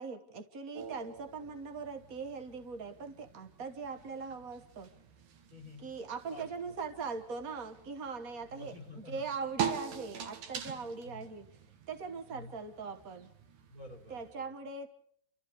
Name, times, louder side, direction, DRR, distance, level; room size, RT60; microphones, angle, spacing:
voice 1, 0.0-4.9 5.8-8.7 9.1-11.5 11.9-13.3 14.1-14.9, right 5 dB, 50° right, 7 dB, 1.1 m, -41 dB
sound 1, 0.7-14.3, right 8 dB, 85° right, 3.2 m, -44 dB
voice 2, 5.5-5.9 6.3-6.8 8.5-9.3 11.0-11.3 12.3-12.5 13.7-14.5, left 2 dB, 30° right, 2 dB, 4.5 m, -50 dB
29.0 x 14.0 x 6.8 m, 0.66 s
omnidirectional pair, 3.5 m